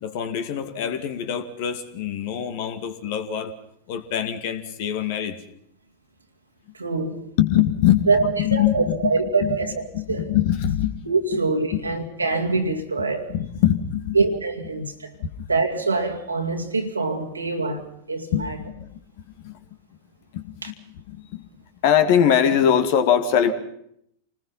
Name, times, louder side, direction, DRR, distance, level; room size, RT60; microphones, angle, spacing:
voice 1, 0.0-3.6 3.9-5.4 7.4-9.1 9.4-9.6 9.9-10.9 11.7-11.8 13.3-14.2 14.7-14.8 15.2-15.3 18.3-19.0 19.3-19.6 20.3-21.4 21.8-23.5, left 9 dB, 50° left, 2.2 m, -23 dB
voice 2, 6.8-7.2 8.1-8.2 8.5-9.7 10.1-10.3 11.1-13.3 14.1-15.1 15.5-18.6 20.6-20.7, right 3 dB, 80° right, 2.3 m, -24 dB
28.5 x 20.0 x 5.7 m
figure-of-eight pair, 90°, 0 cm